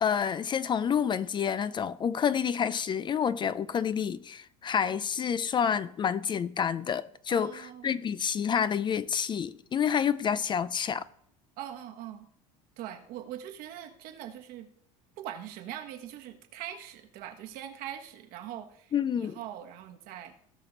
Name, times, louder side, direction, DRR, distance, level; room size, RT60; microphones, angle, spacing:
voice 1, 0.0-11.0 18.9-19.4, left 7 dB, 30° left, 0.4 m, -28 dB
voice 2, 7.3-7.9 11.6-12.3 12.8-14.7 15.2-20.3, right 11 dB, 65° right, 1.4 m, -42 dB
17.5 x 5.8 x 4.0 m
supercardioid pair, 105°, 17 cm